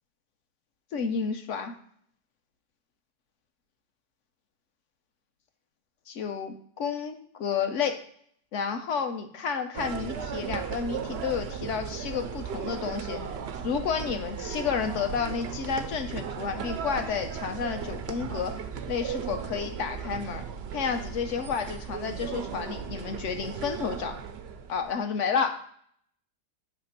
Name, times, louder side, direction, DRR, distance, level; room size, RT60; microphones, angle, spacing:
voice 1, 0.9-1.8 6.1-8.0 8.5-13.2 13.6-18.6 18.9-20.4 20.7-24.1 24.7-25.7, left 6 dB, 60° left, 7 dB, 0.9 m, -31 dB
sound 1, 9.7-24.9, right 7 dB, 85° right, 0.5 m, -36 dB
7.4 x 3.2 x 5.8 m, 0.62 s
omnidirectional pair, 1.8 m